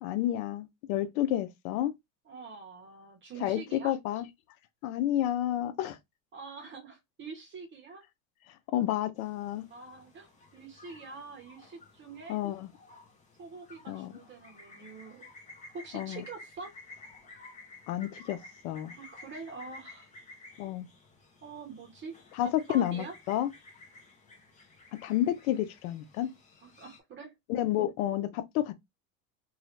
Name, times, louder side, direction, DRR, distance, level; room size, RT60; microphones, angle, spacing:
voice 1, 0.0-1.9 3.4-4.2 4.8-6.0 8.7-9.7 12.3-12.7 13.9-14.2 15.9-16.2 17.9-18.4 18.6-18.9 20.6-20.8 22.4-23.5 25.0-26.3 27.5-28.7, left 12 dB, 80° left, 0.7 m, -30 dB
voice 2, 2.2-3.9 6.3-8.0 9.7-12.4 13.4-15.3 15.7-16.7 19.0-20.1 21.4-23.1 26.6-27.3, right 4 dB, 25° right, 0.9 m, -45 dB
sound 1, 9.2-27.0, left 2 dB, 15° left, 0.7 m, -54 dB
2.7 x 2.4 x 3.1 m
supercardioid pair, 140°, 42 cm